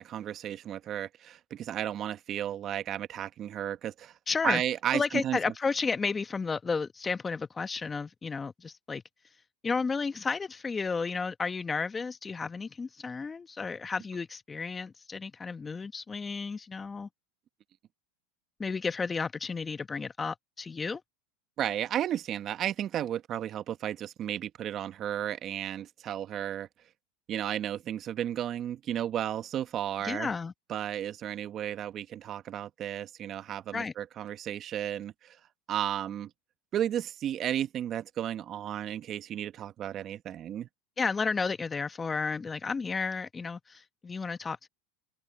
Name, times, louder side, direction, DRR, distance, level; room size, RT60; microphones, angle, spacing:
voice 1, 0.0-4.1 4.4-5.4 21.6-26.7 27.3-30.3 30.7-35.4 35.7-36.3 36.7-40.7, right 10 dB, 40° right, 1.3 m, -33 dB
voice 2, 4.3-4.6 4.9-9.0 9.6-17.1 18.6-21.0 30.0-30.5 33.7-33.9 41.0-44.7, left 4 dB, 20° left, 1.3 m, -32 dB
open air
hypercardioid pair, 105°, 0 cm